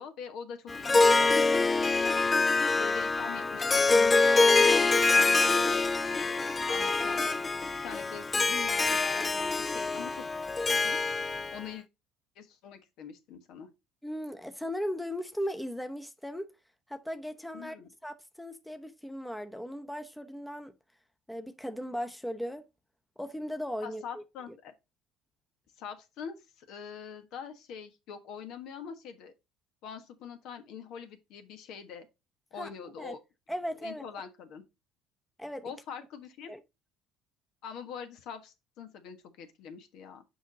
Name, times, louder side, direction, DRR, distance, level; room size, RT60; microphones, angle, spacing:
voice 1, 0.0-2.5 2.8-7.2 7.8-10.3 10.8-11.0 11.5-11.8 12.3-13.7 17.5-17.9 23.8-24.7 25.8-29.3 29.8-32.1 32.5-33.2 33.8-34.6 35.6-36.5 37.6-40.2, left 7 dB, 70° left, 1.3 m, -44 dB
Harp, 0.7-11.6, left 3 dB, 25° left, 0.5 m, -25 dB
voice 2, 14.0-16.5 16.9-17.7 18.0-20.7 21.3-22.7 23.2-24.6 32.6-33.2 33.5-34.1 35.4-35.7 36.5-36.6, equal, 5° left, 0.8 m, -37 dB
6.2 x 5.2 x 3.9 m
supercardioid pair, 80°, 0 cm